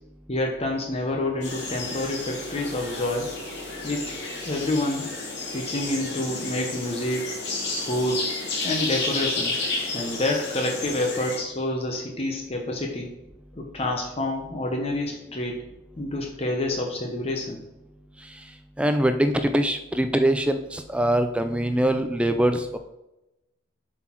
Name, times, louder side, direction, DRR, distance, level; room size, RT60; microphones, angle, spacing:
voice 1, 0.3-3.3 3.8-4.1 4.5-5.1 5.5-7.4 7.8-8.3 8.6-9.5 9.9-13.1 13.6-15.6 16.0-17.6, left 1 dB, 30° left, 1 dB, 0.8 m, -28 dB
sound 1, 1.4-11.4, left 3 dB, 60° left, 2.0 m, -31 dB
voice 2, 18.8-22.8, right 1 dB, 5° right, 8 dB, 0.3 m, -23 dB
7.5 x 4.1 x 4.4 m, 0.94 s
head